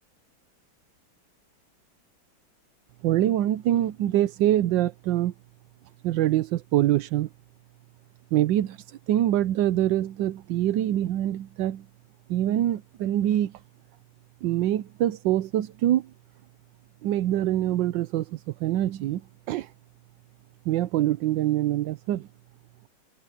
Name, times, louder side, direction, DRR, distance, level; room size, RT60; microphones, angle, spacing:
voice 1, 3.0-5.3 6.0-7.3 8.3-11.8 12.3-13.5 14.4-16.1 17.0-19.2 19.5-19.7 20.7-22.3, right 13 dB, 75° right, 1.3 m, -24 dB
omnidirectional pair, 2.2 m